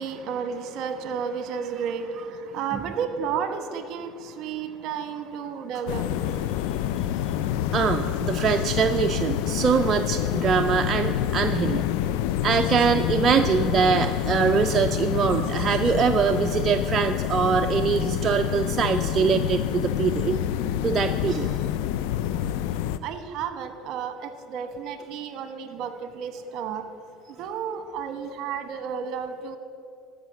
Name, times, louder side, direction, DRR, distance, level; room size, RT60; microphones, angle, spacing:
voice 1, 0.0-6.1 23.0-26.8 27.3-29.6, right 7 dB, 60° right, 9 dB, 1.1 m, -32 dB
sound 1, 5.9-23.0, left 11 dB, 80° left, 0.4 m, -27 dB
voice 2, 7.7-11.8 12.4-20.4 20.8-21.6, right 6 dB, 35° right, 5 dB, 0.5 m, -23 dB
14.0 x 5.7 x 7.5 m, 2.3 s
supercardioid pair, 110°, 0 cm